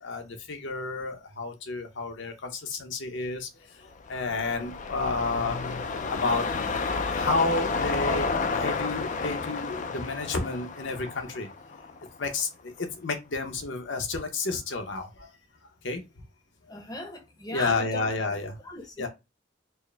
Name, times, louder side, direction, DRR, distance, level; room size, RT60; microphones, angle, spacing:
voice 1, 0.0-5.6 5.9-6.6 7.0-11.5 12.2-15.3 15.8-16.0 17.5-18.6 19.0-19.1, left 3 dB, 65° left, 0.8 m, -31 dB
sound 1, 4.0-12.4 12.8-12.9, left 4 dB, 35° left, 0.4 m, -31 dB
voice 2, 16.7-18.1 18.6-19.1, left 2 dB, 20° left, 0.7 m, -37 dB
4.5 x 2.1 x 3.3 m
head